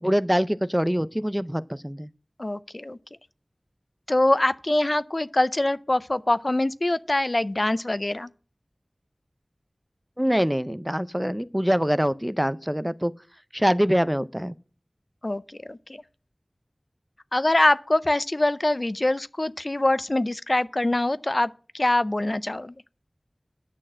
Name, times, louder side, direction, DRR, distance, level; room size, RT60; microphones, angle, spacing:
voice 1, 0.0-2.1 10.2-13.1 13.5-14.5, equal, 10° right, 0.5 m, -24 dB
voice 2, 2.4-3.0 4.1-8.3 15.2-16.0 17.3-22.7, left 1 dB, 45° left, 0.5 m, -24 dB
10.0 x 6.4 x 7.4 m
wide cardioid pair, 45°, 0 cm